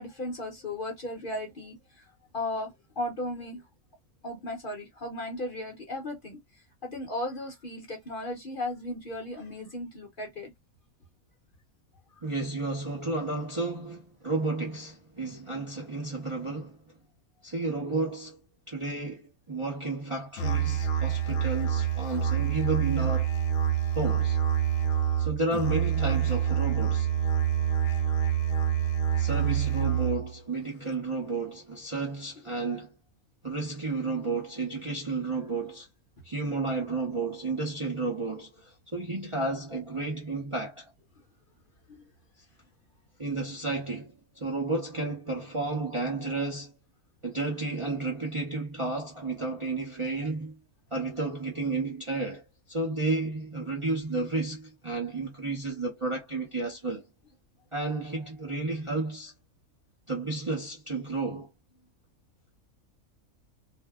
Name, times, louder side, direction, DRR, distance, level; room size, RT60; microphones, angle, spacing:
voice 1, 0.0-3.7 4.2-6.4 6.8-10.5 12.2-12.3, left 1 dB, 45° left, 0.9 m, -36 dB
voice 2, 12.2-16.8 17.4-18.4 18.7-23.3 23.9-24.4 25.2-27.1 29.2-32.9 33.4-35.9 36.2-40.9 43.2-46.7 47.2-50.6 50.9-57.0 57.7-59.3 60.1-61.5, right 3 dB, 30° right, 0.7 m, -32 dB
Musical instrument, 20.4-30.3, right 9 dB, 70° left, 1.0 m, -26 dB
2.6 x 2.1 x 3.5 m
omnidirectional pair, 1.5 m